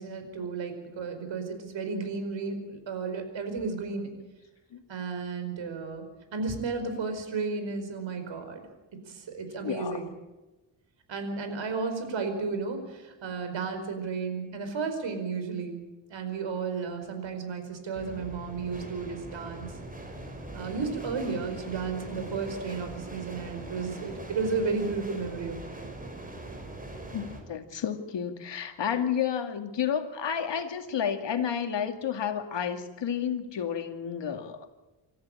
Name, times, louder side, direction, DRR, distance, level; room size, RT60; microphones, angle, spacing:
voice 1, 0.0-4.1 4.9-6.0 6.3-8.6 9.1-10.1 11.1-15.8 16.1-19.7 20.5-25.9, right 4 dB, 75° right, 7 dB, 4.9 m, -33 dB
voice 2, 9.6-10.1 27.1-34.7, left 8 dB, 70° left, 6 dB, 2.4 m, -31 dB
sound 1, 17.9-27.4, right 2 dB, 20° right, 4.9 m, -41 dB
26.5 x 14.0 x 8.9 m, 1.1 s
cardioid pair, 100°, 45 cm